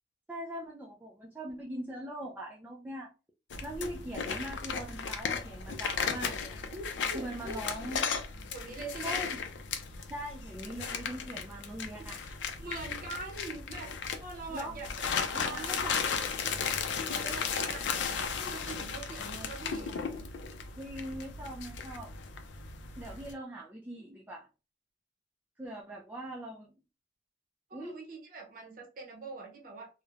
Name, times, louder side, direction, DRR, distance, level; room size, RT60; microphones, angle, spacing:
voice 1, 0.3-3.1 3.6-6.7 7.1-8.0 9.0-9.4 10.1-12.2 14.5-14.8 15.3-16.0 20.8-22.1 23.0-24.5 25.6-26.7 27.7-28.0, right 1 dB, 10° right, -4 dB, 0.3 m, -41 dB
sound 1, 3.5-23.3, left 6 dB, 80° left, 0.4 m, -36 dB
voice 2, 6.7-7.6 8.5-9.2 12.2-15.9 17.1-19.9 27.7-29.9, right 3 dB, 50° right, 0 dB, 0.7 m, -44 dB
3.0 x 2.0 x 2.3 m, 0.32 s
head